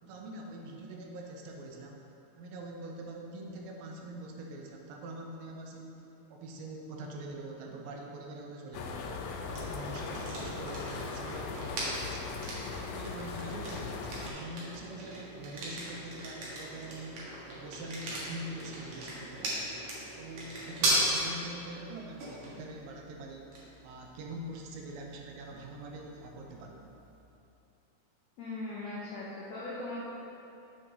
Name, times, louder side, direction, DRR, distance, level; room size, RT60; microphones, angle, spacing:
voice 1, 0.0-2.1 2.3-6.0 6.3-9.1 9.4-12.4 12.8-19.8 20.1-23.5 23.8-27.0, right 1 dB, 80° right, 0 dB, 2.5 m, -44 dB
sound 1, 8.7-14.3, left 4 dB, 90° left, 2.4 m, -39 dB
sound 2, 9.5-27.2, right 1 dB, 60° right, 2.5 m, -38 dB
voice 2, 28.4-30.0, left 2 dB, 75° left, -8 dB, 1.6 m, -39 dB
7.5 x 6.7 x 3.8 m, 2.8 s
omnidirectional pair, 4.2 m